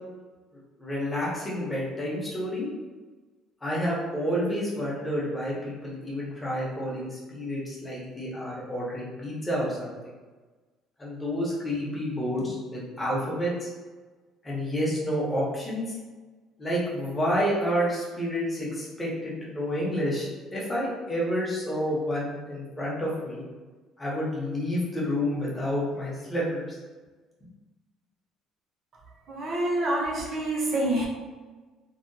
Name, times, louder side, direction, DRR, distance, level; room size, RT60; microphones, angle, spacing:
voice 1, 0.8-2.7 3.6-9.9 11.0-13.7 14.4-15.8 16.6-23.4 24.0-26.8, equal, 15° left, -5 dB, 0.6 m, -29 dB
voice 2, 29.3-31.1, right 1 dB, 35° right, -2 dB, 0.5 m, -27 dB
2.7 x 2.0 x 2.6 m, 1.3 s
cardioid pair, 170°, 0 cm